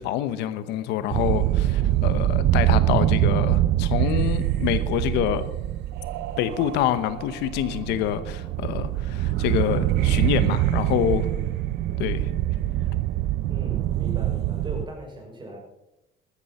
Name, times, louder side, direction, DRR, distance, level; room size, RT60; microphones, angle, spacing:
voice 1, 0.0-5.4 6.4-11.3 12.0-12.3, left 11 dB, 90° left, 1.0 m, -26 dB
sound 1, 1.1-14.8, right 14 dB, 80° right, 0.7 m, -24 dB
voice 2, 13.5-15.6, equal, 30° right, 6.0 m, -38 dB
14.0 x 13.0 x 4.3 m
cardioid pair, 110°, 17 cm